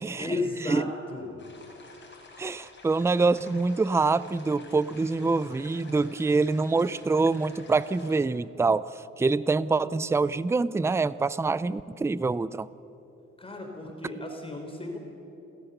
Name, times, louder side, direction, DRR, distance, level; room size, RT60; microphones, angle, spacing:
voice 1, 0.0-1.5 13.4-15.0, left 2 dB, 20° left, 3 dB, 3.6 m, -34 dB
sound 1, 1.4-8.2, left 3 dB, 35° left, 4.9 m, -51 dB
voice 2, 2.4-8.9 9.2-12.7, right 3 dB, 10° right, 18 dB, 0.4 m, -25 dB
30.0 x 14.0 x 6.8 m, 2.9 s
cardioid pair, 90°, 30 cm